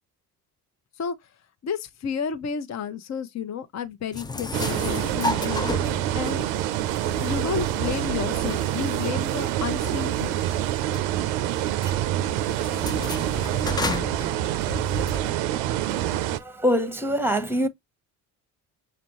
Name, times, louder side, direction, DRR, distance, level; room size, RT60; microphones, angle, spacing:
voice 1, 1.6-5.6 6.1-6.5 7.2-10.6, left 7 dB, 35° left, 0.7 m, -31 dB
sound 1, 4.1-15.3, left 3 dB, 10° left, 0.3 m, -34 dB
sound 2, 4.5-16.4, right 12 dB, 80° right, 0.6 m, -26 dB
voice 2, 16.0-17.7, equal, 5° right, 0.9 m, -25 dB
6.3 x 2.5 x 3.0 m
hypercardioid pair, 60°, 45 cm